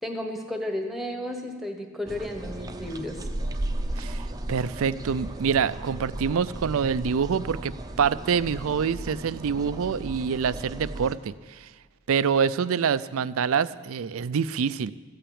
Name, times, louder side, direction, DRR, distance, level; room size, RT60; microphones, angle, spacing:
voice 1, 0.0-3.3, left 1 dB, ahead, 3 dB, 1.3 m, -33 dB
sound 1, 2.1-11.1, right 1 dB, 15° right, 0.6 m, -35 dB
voice 2, 4.5-11.7 12.1-14.9, right 6 dB, 65° right, 16 dB, 0.4 m, -26 dB
14.5 x 9.0 x 8.6 m, 1.5 s
head